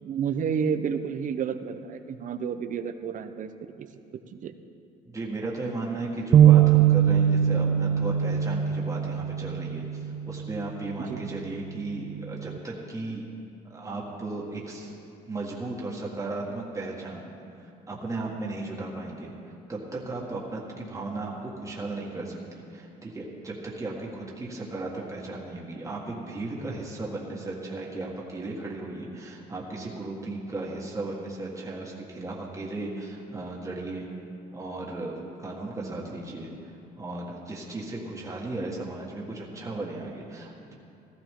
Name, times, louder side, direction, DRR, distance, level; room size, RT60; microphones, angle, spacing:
voice 1, 0.0-3.5 3.8-3.9 4.3-4.5 11.1-11.3, right 7 dB, 50° right, 10 dB, 0.8 m, -30 dB
voice 2, 5.1-9.8 10.2-13.3 13.7-14.9 15.3-17.3 17.6-34.1 34.5-35.1 35.4-40.7, right 2 dB, 20° right, -3 dB, 1.8 m, -35 dB
sound 1, 6.3-10.6 11.1-11.3 12.1-12.6, right 9 dB, 35° right, 0.4 m, -21 dB
15.5 x 13.5 x 3.8 m, 2.6 s
cardioid pair, 110°, 17 cm